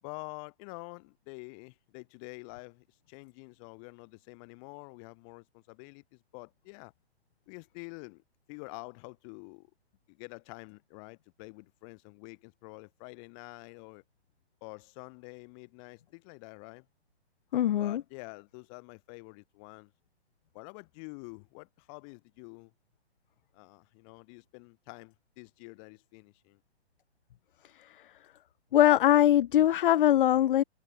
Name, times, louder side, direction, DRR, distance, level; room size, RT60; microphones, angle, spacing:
voice 1, 0.0-6.9 7.5-8.2 8.5-9.7 10.1-14.0 14.6-16.9 17.8-19.9 20.5-22.7 23.5-26.6, left 38 dB, 30° left, 2.7 m, -47 dB
voice 2, 17.5-18.0 27.6-28.0 28.7-30.6, left 12 dB, 50° left, 0.8 m, -22 dB
open air
hypercardioid pair, 140°, 34 cm